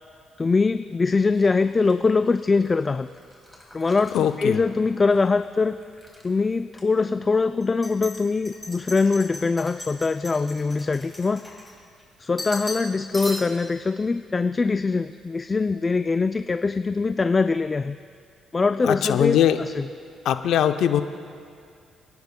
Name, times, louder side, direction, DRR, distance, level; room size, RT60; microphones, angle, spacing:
voice 1, 0.4-3.1 3.7-5.8 6.2-11.4 12.2-18.0 18.5-19.4 19.8-19.9, left 4 dB, 30° left, 10 dB, 0.3 m, -22 dB
sound 1, 1.3-5.3 5.6-6.3 6.7-6.8 7.6-12.0 12.4-12.9 13.1-13.7, left 1 dB, 10° left, 2.8 m, -39 dB
voice 2, 4.1-4.6 18.8-19.6 20.2-21.0, left 10 dB, 80° left, 9 dB, 0.6 m, -21 dB
27.5 x 10.5 x 2.2 m, 2.4 s
cardioid pair, 90°, 0 cm